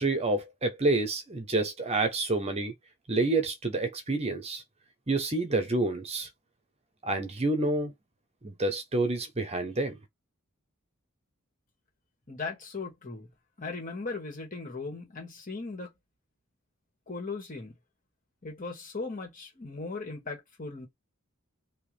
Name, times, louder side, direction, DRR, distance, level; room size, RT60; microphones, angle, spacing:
voice 1, 0.0-2.7 3.1-4.6 5.1-6.3 7.0-7.9 8.4-10.0, right 2 dB, 30° right, 0.9 m, -28 dB
voice 2, 12.3-13.3 13.6-15.9 17.1-17.7 18.4-20.9, left 3 dB, 40° left, 2.1 m, -38 dB
4.7 x 2.9 x 3.3 m
head